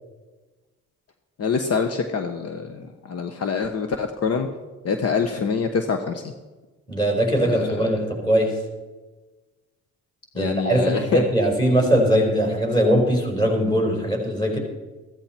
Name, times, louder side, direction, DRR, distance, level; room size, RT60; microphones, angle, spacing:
voice 1, 1.4-4.5 4.8-6.3 7.4-8.3 10.3-11.2, left 5 dB, 55° left, 7 dB, 1.2 m, -25 dB
voice 2, 6.9-8.5 10.3-14.6, equal, 15° left, 1 dB, 5.0 m, -21 dB
15.5 x 14.5 x 4.5 m, 1.2 s
cardioid pair, 90°, 30 cm